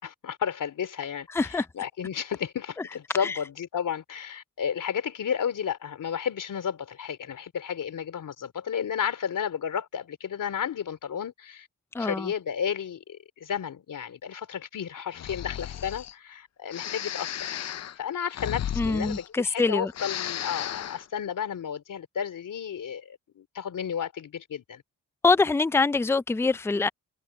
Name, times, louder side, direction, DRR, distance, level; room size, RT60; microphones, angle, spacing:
voice 1, 0.0-11.7 12.0-17.6 18.0-24.8, left 8 dB, 80° left, 3.5 m, -32 dB
voice 2, 1.3-1.6 3.2-3.3 11.9-12.3 18.8-19.9 25.2-26.9, left 3 dB, 10° left, 0.4 m, -24 dB
Breathing, 15.1-16.1 16.7-19.6 19.9-21.0, left 10 dB, 55° left, 0.5 m, -35 dB
cardioid pair, 85°, 31 cm